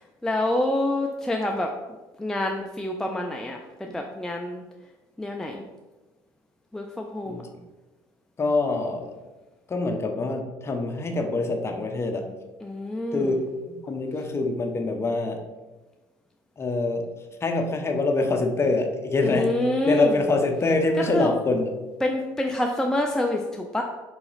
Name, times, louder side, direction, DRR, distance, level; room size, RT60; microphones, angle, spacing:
voice 1, 0.0-1.7 2.2-4.6 5.2-5.6 6.7-7.5 12.6-13.4 19.2-20.2 20.9-21.3 22.0-23.8, left 1 dB, 5° left, 1 dB, 0.4 m, -27 dB
voice 2, 8.4-9.1 9.7-12.3 13.1-13.4 13.7-15.4 16.6-17.0 17.4-19.5 19.9-21.7, left 3 dB, 25° left, 4 dB, 0.7 m, -25 dB
3.9 x 2.9 x 4.0 m, 1.1 s
supercardioid pair, 85°, 10 cm